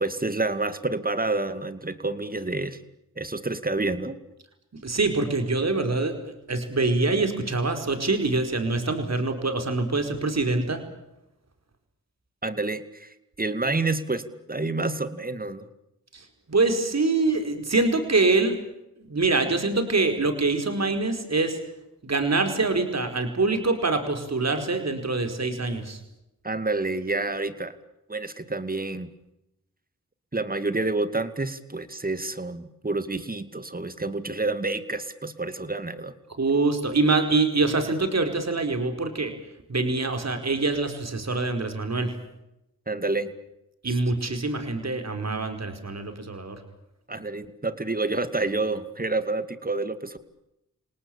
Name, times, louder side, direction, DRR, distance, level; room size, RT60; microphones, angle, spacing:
voice 1, 0.0-2.8 3.2-4.2 12.4-15.7 26.4-27.8 28.1-29.1 30.3-36.1 42.9-43.3 43.9-44.0 47.1-50.2, right 2 dB, 25° right, 11 dB, 2.4 m, -28 dB
voice 2, 4.7-6.1 6.5-10.8 16.1-18.6 19.0-21.6 22.0-26.0 36.4-39.3 39.7-42.1 43.8-46.6, right 3 dB, 50° right, 7 dB, 4.8 m, -25 dB
28.0 x 18.5 x 8.9 m, 0.87 s
cardioid pair, 45°, 33 cm